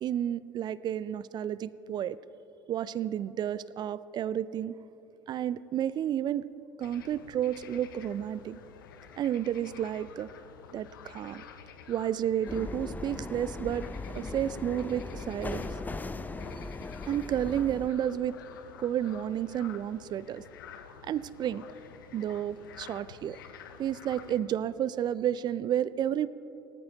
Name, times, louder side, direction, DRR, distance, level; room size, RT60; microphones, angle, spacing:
voice 1, 0.0-2.2 2.7-4.7 5.3-6.5 6.8-8.6 9.2-10.3 10.7-11.4 11.9-13.8 14.1-15.8 17.1-18.4 18.8-20.4 21.0-21.6 22.1-23.4 23.8-26.3, right 10 dB, 40° right, 18 dB, 0.4 m, -31 dB
sound 1, 6.8-24.4, left 7 dB, 80° left, 0.7 m, -50 dB
sound 2, 12.5-17.9, left 3 dB, 15° left, 0.5 m, -39 dB
18.5 x 13.5 x 2.9 m, 2.9 s
hypercardioid pair, 65°, 11 cm